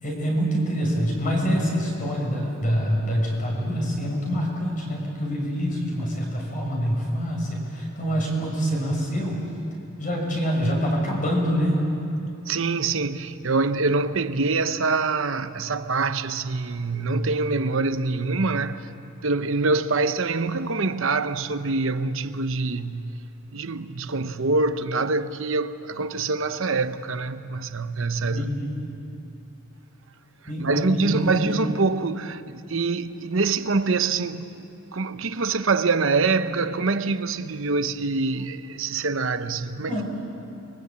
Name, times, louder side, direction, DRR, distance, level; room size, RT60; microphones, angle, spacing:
voice 1, 0.0-9.4 10.0-11.8 28.3-28.8 30.5-31.4 39.9-40.0, equal, 35° left, 6.8 m, -25 dB
voice 2, 12.5-18.9 19.2-23.2 23.5-28.5 30.6-34.7 34.9-40.0, right 3 dB, 60° right, 0.9 m, -25 dB
29.5 x 23.5 x 8.7 m
head